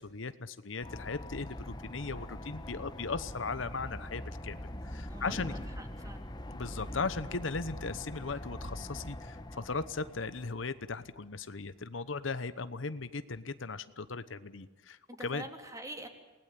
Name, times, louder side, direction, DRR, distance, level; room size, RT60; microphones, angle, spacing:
voice 1, 0.0-5.5 6.5-15.4, left 4 dB, 75° left, 13 dB, 1.0 m, -38 dB
sound 1, 0.8-11.0, left 1 dB, 20° left, 1.2 m, -43 dB
voice 2, 5.1-6.3 15.1-16.1, right 1 dB, 15° right, 4 dB, 3.1 m, -46 dB
28.5 x 19.5 x 8.4 m, 1.2 s
head